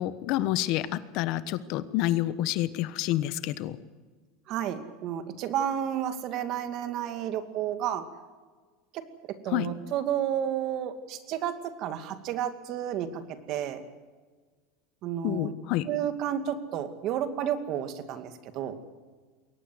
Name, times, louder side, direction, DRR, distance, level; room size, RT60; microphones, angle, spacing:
voice 1, 0.0-3.8 9.5-9.7 15.2-15.9, left 14 dB, 60° left, 14 dB, 1.2 m, -28 dB
voice 2, 4.5-8.0 8.9-13.8 15.0-15.5 15.9-18.7, right 10 dB, 50° right, 9 dB, 2.4 m, -31 dB
22.5 x 18.5 x 7.9 m, 1.4 s
supercardioid pair, 130°, 0 cm